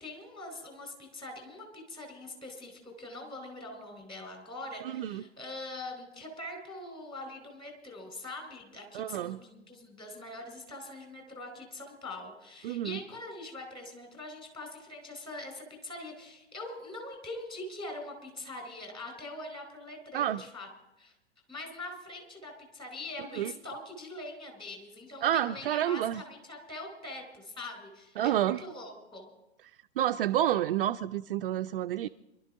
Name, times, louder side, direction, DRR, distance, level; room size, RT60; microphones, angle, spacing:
voice 1, 0.0-20.7 21.0-21.1 21.5-29.2 32.0-32.1, left 2 dB, 15° left, 4.1 m, -43 dB
voice 2, 4.8-5.2 8.9-9.4 12.6-13.0 20.1-20.4 23.4-23.5 25.2-26.2 28.2-28.6 30.0-32.1, right 11 dB, 50° right, 0.5 m, -29 dB
26.0 x 12.0 x 3.7 m
figure-of-eight pair, 105°, 35 cm